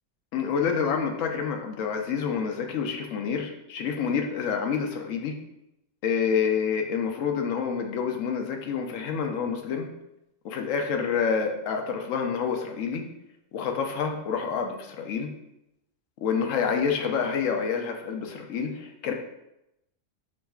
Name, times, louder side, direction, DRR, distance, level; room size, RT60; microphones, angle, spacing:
voice 1, 0.3-5.3 6.0-9.9 10.4-13.0 13.5-15.3 16.2-19.1, left 6 dB, 80° left, 4 dB, 1.0 m, -28 dB
5.9 x 3.1 x 2.3 m, 0.87 s
omnidirectional pair, 1.3 m